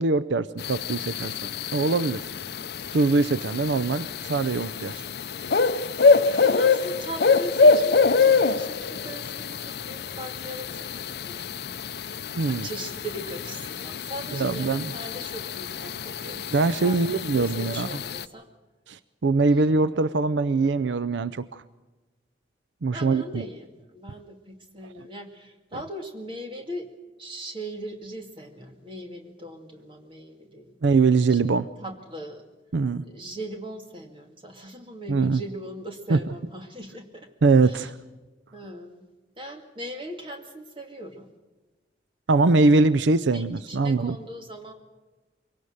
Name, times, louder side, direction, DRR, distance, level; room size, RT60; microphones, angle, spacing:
voice 1, 0.0-1.4 1.7-2.2 2.9-5.0 12.4-12.7 14.3-14.9 16.5-17.9 18.9-21.6 22.8-23.4 30.8-31.7 32.7-33.0 35.1-35.4 36.1-36.2 37.4-37.9 42.3-44.2, right 3 dB, 80° right, 15 dB, 0.5 m, -22 dB
sound 1, 0.6-18.2, left 4 dB, 60° left, 0.6 m, -25 dB
voice 2, 6.1-11.6 12.5-18.5 22.9-26.9 27.2-30.7 31.3-31.4 31.8-32.4 33.0-37.3 37.6-37.9 38.5-39.1 39.4-41.3 42.3-42.5 43.3-44.7, right 1 dB, 30° right, 4 dB, 2.3 m, -39 dB
23.5 x 17.5 x 6.5 m, 1.2 s
head